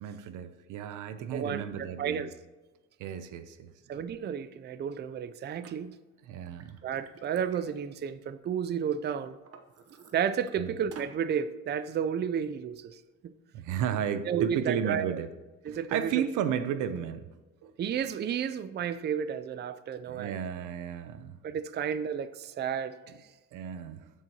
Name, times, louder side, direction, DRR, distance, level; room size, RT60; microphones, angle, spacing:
voice 1, 0.0-2.3 3.0-3.7 6.3-6.8 10.6-10.7 13.5-15.3 15.7-17.3 17.6-17.7 20.1-21.4 23.5-24.1, right 8 dB, 90° right, 12 dB, 0.6 m, -33 dB
voice 2, 1.3-2.3 3.9-6.0 6.8-9.4 10.1-13.3 14.3-15.2 15.6-16.3 17.8-20.3 21.4-23.0, right 8 dB, 35° right, 13 dB, 0.4 m, -32 dB
Liquid, 5.6-5.7 6.3-8.7 9.1-10.5 10.9-11.2, right 5 dB, 50° right, 0.9 m, -53 dB
13.0 x 4.7 x 2.9 m, 1.2 s
cardioid pair, 90°, 30 cm